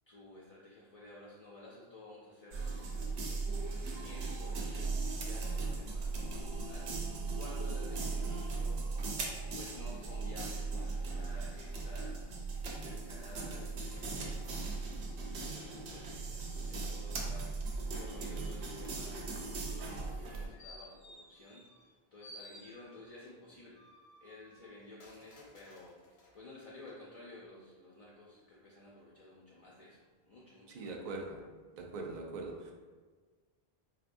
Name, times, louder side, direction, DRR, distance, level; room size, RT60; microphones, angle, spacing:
voice 1, 0.1-9.0 9.5-19.3 19.7-23.8 24.2-31.1, left 2 dB, 50° left, -5 dB, 0.4 m, -54 dB
sound 1, 2.5-20.5, right 3 dB, 85° right, 0.9 m, -38 dB
sound 2, 20.2-21.9 22.2-23.2 23.7-26.4 26.8-26.9, left 1 dB, 90° left, 1.1 m, -56 dB
voice 2, 30.7-31.4 31.7-32.7, right 3 dB, 55° right, 1 dB, 0.5 m, -41 dB
4.1 x 2.3 x 2.5 m, 1.4 s
omnidirectional pair, 1.1 m